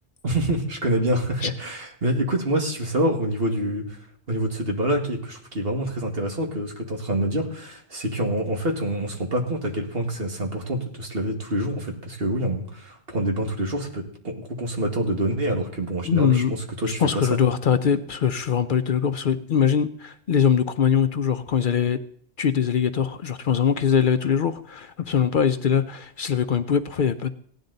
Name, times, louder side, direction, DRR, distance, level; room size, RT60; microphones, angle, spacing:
voice 1, 0.2-4.0 4.3-17.4, right 1 dB, 65° right, 2.1 m, -26 dB
voice 2, 16.0-16.5 17.0-22.0 22.4-27.3, left 7 dB, 55° left, 0.7 m, -22 dB
17.0 x 10.5 x 4.0 m
omnidirectional pair, 1.1 m